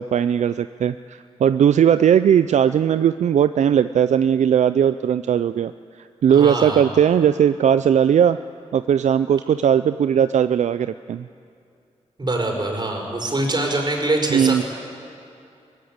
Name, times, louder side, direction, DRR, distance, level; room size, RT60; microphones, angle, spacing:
voice 1, 0.0-5.7 6.0-8.4 8.7-11.3 14.3-14.6, right 8 dB, 75° right, 13 dB, 0.4 m, -18 dB
voice 2, 6.3-6.9 12.2-14.6, right 2 dB, 35° right, 2 dB, 4.9 m, -24 dB
22.5 x 16.5 x 8.8 m, 2.5 s
cardioid pair, 65°, 12 cm